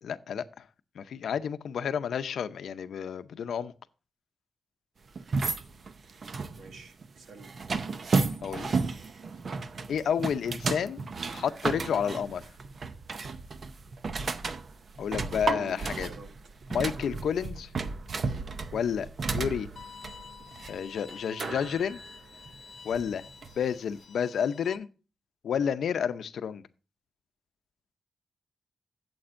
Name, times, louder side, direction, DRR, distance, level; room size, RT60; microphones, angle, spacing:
voice 1, 0.0-0.7 0.9-3.7 8.4-8.8 9.9-11.0 11.3-12.5 15.0-16.1 16.7-17.7 18.7-19.7 20.7-22.0 22.8-23.3 23.6-24.9 25.4-26.6, left 7 dB, 90° left, 0.6 m, -30 dB
sound 1, 5.2-23.7, right 4 dB, 45° right, 0.6 m, -33 dB
voice 2, 6.5-7.5 15.5-16.3, right 4 dB, 85° right, 1.6 m, -47 dB
Bowed string instrument, 19.8-24.8, left 6 dB, 50° left, 1.2 m, -49 dB
13.0 x 7.8 x 2.5 m
wide cardioid pair, 170°, 0 cm